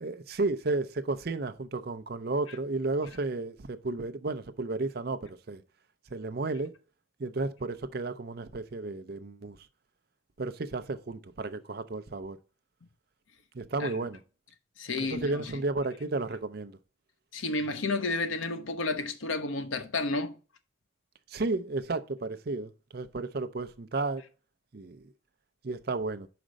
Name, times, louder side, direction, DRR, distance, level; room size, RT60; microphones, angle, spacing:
voice 1, 0.0-5.6 6.1-6.7 7.2-9.6 10.4-12.4 13.5-14.2 15.1-16.8 21.3-24.2 24.7-25.0 25.6-26.3, right 3 dB, 50° right, 0.5 m, -33 dB
voice 2, 14.8-15.5 17.3-20.3, left 3 dB, 85° left, 0.8 m, -31 dB
5.1 x 5.0 x 6.3 m
head